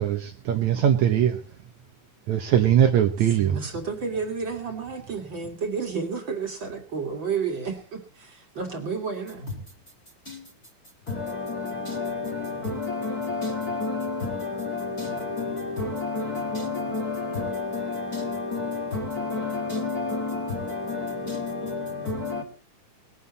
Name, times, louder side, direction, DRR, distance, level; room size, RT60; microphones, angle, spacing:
voice 1, 0.0-1.4 2.3-3.6, right 10 dB, 65° right, 2.2 m, -21 dB
voice 2, 3.4-9.5, right 5 dB, 40° right, 2.4 m, -31 dB
voice 3, 11.1-22.4, left 3 dB, 35° left, 2.0 m, -30 dB
20.5 x 11.5 x 4.1 m
omnidirectional pair, 3.8 m